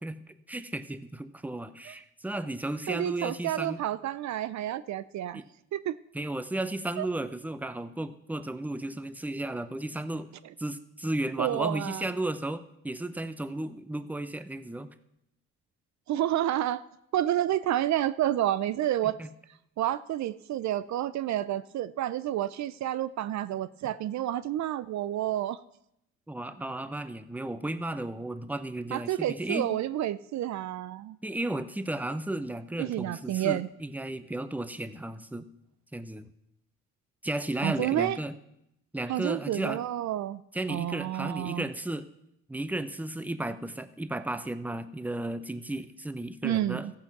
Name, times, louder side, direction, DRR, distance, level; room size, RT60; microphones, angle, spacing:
voice 1, 0.0-3.8 5.3-5.5 6.1-10.3 10.6-14.9 19.2-19.3 26.3-29.7 31.2-35.4 35.9-36.3 37.2-38.3 38.9-39.8 40.5-42.1 42.5-46.9, right 1 dB, 5° right, 12 dB, 0.8 m, -34 dB
voice 2, 2.9-5.4 5.7-5.9 7.0-7.1 11.4-12.1 16.1-16.9 17.1-19.2 19.8-25.6 28.9-31.2 32.8-33.7 37.6-38.2 39.1-40.4 40.7-41.7 46.4-46.9, right 12 dB, 65° right, 17 dB, 0.5 m, -29 dB
14.5 x 8.6 x 6.0 m, 0.80 s
cardioid pair, 90°, 30 cm